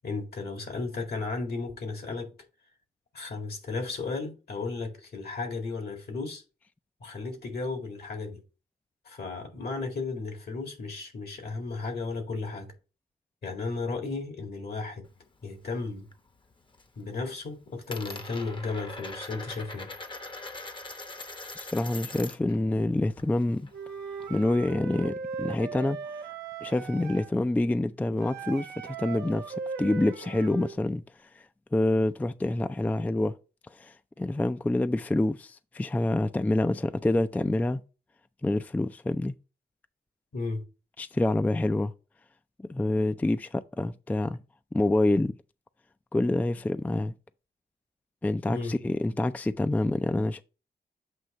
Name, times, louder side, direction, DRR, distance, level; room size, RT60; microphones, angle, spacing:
voice 1, 0.0-2.3 3.1-6.4 7.0-8.4 9.1-12.7 13.4-15.1 15.4-16.1 17.0-19.9 40.3-40.6 48.5-48.8, left 3 dB, 70° left, 2.0 m, -34 dB
Coin (dropping), 15.0-16.2 16.5-17.0 17.3-22.6 22.8-24.5, left 2 dB, 30° left, 0.8 m, -42 dB
voice 2, 21.6-23.7 24.3-26.0 26.6-31.0 31.4-31.5 31.7-33.3 33.8-37.8 38.4-39.3 41.0-41.9 42.7-44.4 44.7-45.4 46.1-47.1 48.2-50.4, left 2 dB, 10° left, 0.3 m, -27 dB
Wind instrument woodwind instrument, 23.7-27.3 28.2-30.8, right 6 dB, 90° right, 0.9 m, -38 dB
7.7 x 2.9 x 5.3 m
cardioid pair, 80°, 17 cm